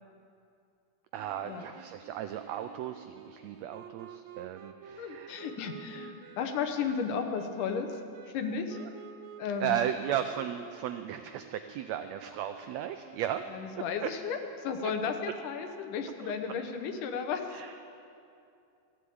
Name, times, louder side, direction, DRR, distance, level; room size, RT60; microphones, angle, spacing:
voice 1, 1.1-5.4 9.6-13.4 14.0-14.1 14.8-14.9 16.2-16.3 17.5-17.7, right 10 dB, 85° right, 8 dB, 1.5 m, -35 dB
sound 1, 1.2-13.8, right 8 dB, 70° right, 2.0 m, -51 dB
voice 2, 5.0-8.0 8.3-8.8 9.4-9.8 13.5-17.7, left 6 dB, 85° left, 6 dB, 2.5 m, -34 dB
14.5 x 8.1 x 8.5 m, 2.5 s
omnidirectional pair, 3.6 m